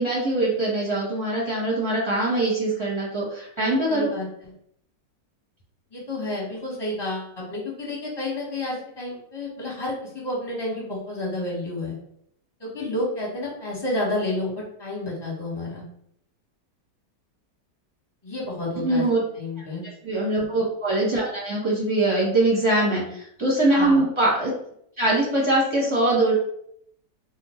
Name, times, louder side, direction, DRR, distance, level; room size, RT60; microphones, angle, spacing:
voice 1, 0.0-4.1 18.8-19.2 20.0-24.5 25.0-26.3, right 2 dB, 20° right, -6 dB, 1.0 m, -22 dB
voice 2, 3.9-4.5 5.9-11.9 12.6-15.8 18.2-19.0 19.3-19.8 20.1-20.4 22.8-23.1 23.7-24.0, left 1 dB, 15° left, -5 dB, 1.0 m, -30 dB
2.8 x 2.5 x 4.2 m, 0.70 s
omnidirectional pair, 1.9 m